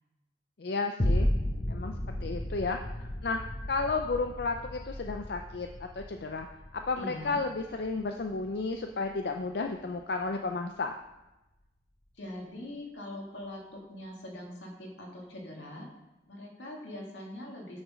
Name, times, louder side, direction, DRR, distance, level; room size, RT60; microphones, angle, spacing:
voice 1, 0.6-1.3 1.7-1.9 2.2-3.4 3.7-6.5 6.7-11.0, left 3 dB, 65° left, 4 dB, 0.5 m, -33 dB
sound 1, 1.0-9.5 10.0-10.1, left 1 dB, 35° left, 1.1 m, -34 dB
voice 2, 7.0-7.4 12.2-15.9 16.3-17.8, left 1 dB, 85° left, -1 dB, 2.2 m, -42 dB
9.3 x 6.4 x 5.0 m, 1.0 s
head